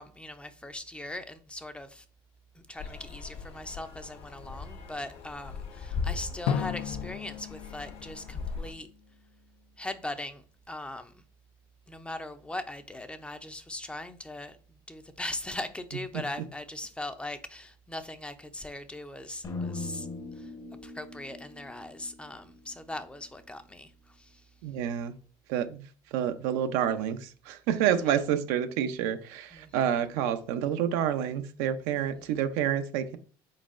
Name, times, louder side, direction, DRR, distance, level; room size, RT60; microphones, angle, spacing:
voice 1, 0.0-2.0 2.7-8.9 9.8-11.2 11.9-14.6 14.9-20.1 20.4-20.5 20.8-24.4 27.8-28.1 29.5-30.0 31.9-32.4, left 1 dB, 10° left, 0.4 m, -40 dB
sound 1, 2.8-8.7, left 5 dB, 60° left, 1.0 m, -39 dB
Drum, 6.5-9.2, left 8 dB, 80° left, 0.4 m, -35 dB
sound 2, 19.4-23.6, left 3 dB, 30° left, 0.8 m, -41 dB
voice 2, 24.6-25.2 25.5-25.8 26.1-33.2, right 9 dB, 80° right, 0.5 m, -28 dB
4.1 x 4.0 x 2.4 m
supercardioid pair, 105°, 12 cm